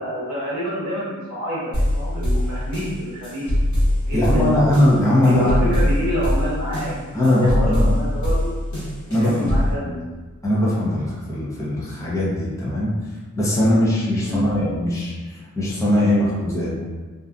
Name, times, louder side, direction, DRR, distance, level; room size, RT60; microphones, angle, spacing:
voice 1, 0.0-3.5 4.0-4.7 5.1-8.5 9.1-10.0 14.2-14.5, equal, 60° right, -11 dB, 0.8 m, -28 dB
sound 1, 1.7-9.7, left 1 dB, 60° left, 1.1 m, -22 dB
voice 2, 4.1-5.7 7.1-7.9 9.1-9.5 9.8-9.9 10.4-12.9 13.3-16.8, left 1 dB, 10° left, -8 dB, 0.6 m, -20 dB
2.6 x 2.2 x 2.4 m, 1.4 s
wide cardioid pair, 100°, 32 cm